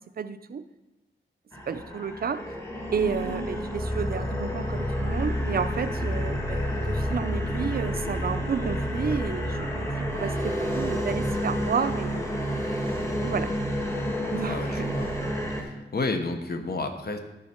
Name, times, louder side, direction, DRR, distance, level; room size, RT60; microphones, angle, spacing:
voice 1, 0.2-0.6 1.7-2.4 2.9-12.5 12.9-13.5 14.3-15.0, right 6 dB, 45° right, 11 dB, 0.5 m, -31 dB
sound 1, 1.5-15.6, equal, 15° left, 1.3 m, -29 dB
voice 2, 14.5-15.1 15.6-17.2, left 3 dB, 50° left, 6 dB, 1.0 m, -31 dB
12.5 x 5.4 x 4.4 m, 1.0 s
wide cardioid pair, 125°, 21 cm